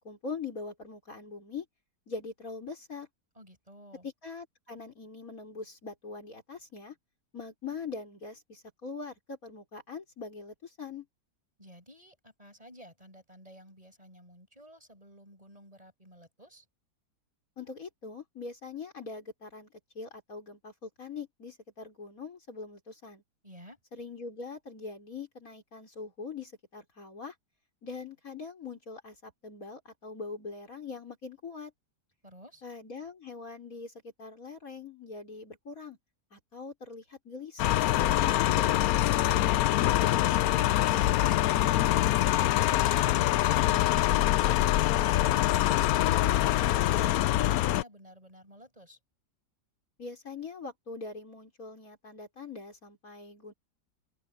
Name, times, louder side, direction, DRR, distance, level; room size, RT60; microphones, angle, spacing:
voice 1, 0.0-1.6 2.1-3.1 4.0-6.9 7.3-11.1 17.6-19.7 19.9-23.2 23.9-27.3 27.8-31.7 32.6-36.0 36.3-37.8 38.2-39.6 50.0-53.5, left 4 dB, 50° left, 5.0 m, -42 dB
voice 2, 3.4-4.1 11.6-16.7 23.4-23.8 32.2-32.6 40.4-42.7 42.9-45.4 45.7-49.0, equal, 20° right, 7.2 m, -53 dB
sound 1, 37.6-47.8, left 14 dB, 70° left, 0.9 m, -24 dB
open air
omnidirectional pair, 1.8 m